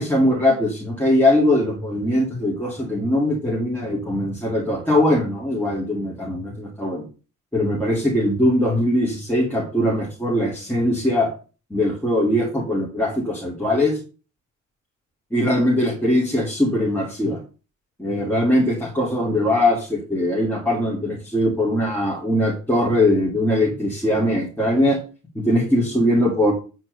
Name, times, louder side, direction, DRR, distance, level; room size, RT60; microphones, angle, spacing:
voice 1, 0.0-7.0 7.5-11.3 11.7-14.0 15.3-17.4 18.0-25.0 25.3-26.5, left 1 dB, 5° left, -4 dB, 2.8 m, -21 dB
9.1 x 4.5 x 6.5 m, 0.35 s
cardioid pair, 90°, 30 cm